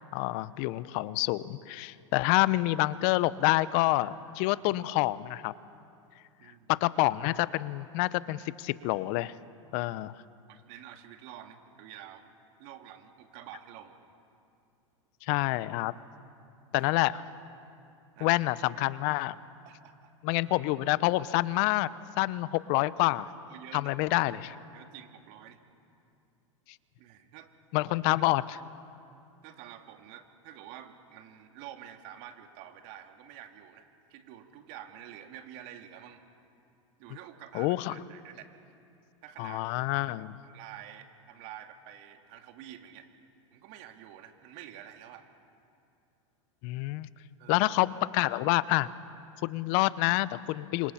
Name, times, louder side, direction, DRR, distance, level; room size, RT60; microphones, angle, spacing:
voice 1, 0.1-5.5 6.7-9.3 9.7-10.1 15.2-15.9 16.7-17.2 18.2-19.3 20.2-21.9 22.2-23.3 23.7-24.6 27.7-28.6 37.5-38.0 39.4-40.4 46.6-47.1 47.5-48.9 49.4-50.9, left 19 dB, 55° left, 17 dB, 0.8 m, -27 dB
voice 2, 6.4-6.8 10.5-12.2 12.6-13.9 16.8-16.9 18.2-18.4 19.6-20.1 23.5-23.9 24.7-25.6 27.0-27.5 29.4-36.2 37.0-38.5 39.2-39.6 40.5-43.1 43.5-45.2 47.4-47.7, right 11 dB, 55° right, 5 dB, 2.5 m, -48 dB
29.0 x 26.5 x 5.8 m, 2.6 s
hypercardioid pair, 100°, 17 cm